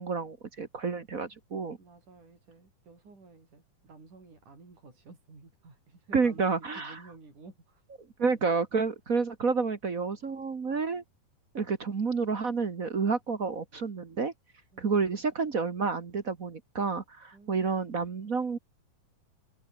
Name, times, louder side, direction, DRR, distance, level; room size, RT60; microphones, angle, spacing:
voice 1, 0.0-1.8 6.1-7.0 8.2-11.0 11.5-14.3 14.8-18.6, right 4 dB, 40° right, 1.2 m, -29 dB
voice 2, 1.8-7.8 8.2-8.4 14.7-15.3 17.3-17.9, right 3 dB, 65° right, 9.5 m, -53 dB
omnidirectional pair, 3.8 m